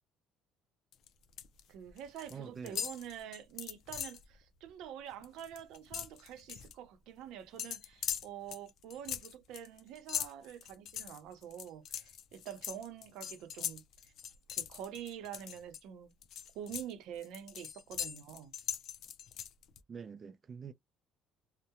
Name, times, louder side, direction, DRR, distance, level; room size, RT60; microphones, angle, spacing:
sound 1, 0.9-1.6 1.9-2.4 2.7-4.2 4.7-4.8 5.1-6.7 7.6-15.8 16.2-19.8, left 9 dB, 60° left, 0.4 m, -41 dB
voice 1, 1.7-14.1 14.6-16.1 16.5-18.5, right 10 dB, 75° right, 0.6 m, -46 dB
voice 2, 2.3-2.9 19.9-20.7, right 6 dB, 30° right, 0.3 m, -46 dB
2.8 x 2.1 x 2.2 m
cardioid pair, 120°, 0 cm